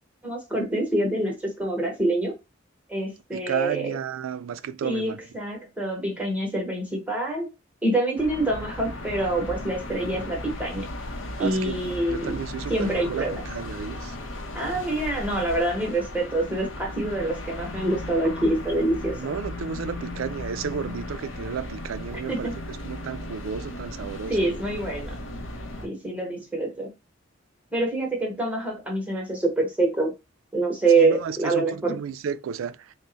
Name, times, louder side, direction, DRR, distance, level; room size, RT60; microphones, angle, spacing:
voice 1, 0.2-2.3 2.9-4.0 4.8-7.5 7.8-10.8 11.4-12.4 12.7-13.4 14.5-19.1 22.3-22.6 24.3-25.1 25.8-26.9 27.7-30.1 30.5-32.0, right 2 dB, 10° right, 0.9 m, -26 dB
voice 2, 3.3-5.2 11.4-14.2 19.2-22.5 22.8-24.4 31.0-32.9, right 7 dB, 80° right, 0.3 m, -33 dB
sound 1, 8.2-25.9, left 1 dB, 70° left, 0.7 m, -36 dB
3.4 x 2.1 x 3.8 m
head